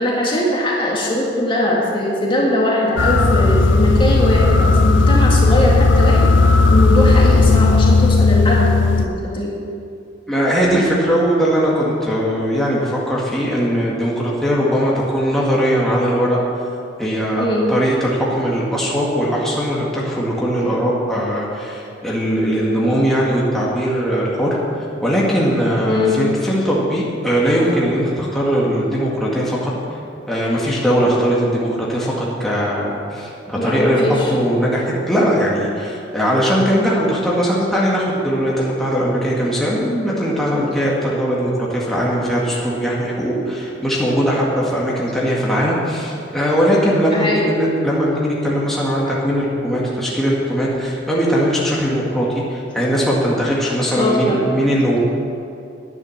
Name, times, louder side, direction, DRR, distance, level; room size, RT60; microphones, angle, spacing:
voice 1, 0.0-6.3 6.7-9.5 17.4-17.7 25.9-26.2 33.6-34.3 47.1-47.5 54.0-54.5, left 1 dB, 25° left, -3 dB, 1.8 m, -20 dB
sound 1, 3.0-9.1, left 3 dB, 80° left, 0.6 m, -14 dB
voice 2, 10.3-16.4 17.0-24.6 25.0-30.0 30.3-55.0, equal, ahead, -6 dB, 1.8 m, -19 dB
11.0 x 10.5 x 6.5 m, 2.6 s
head